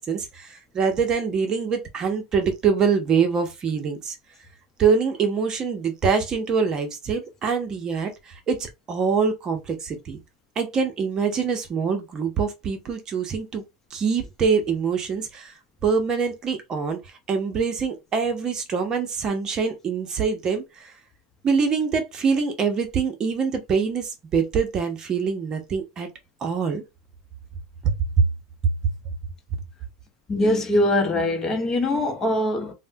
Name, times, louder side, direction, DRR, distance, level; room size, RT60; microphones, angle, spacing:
voice 1, 0.0-4.2 4.8-10.2 10.6-13.6 13.9-15.5 15.8-17.0 17.3-20.9 21.4-26.1 26.4-26.8 27.8-27.9, right 5 dB, 30° right, 0.7 m, -24 dB
voice 2, 30.3-32.7, left 1 dB, 25° left, 0.8 m, -22 dB
3.3 x 2.1 x 2.6 m
supercardioid pair, 115°, 2 cm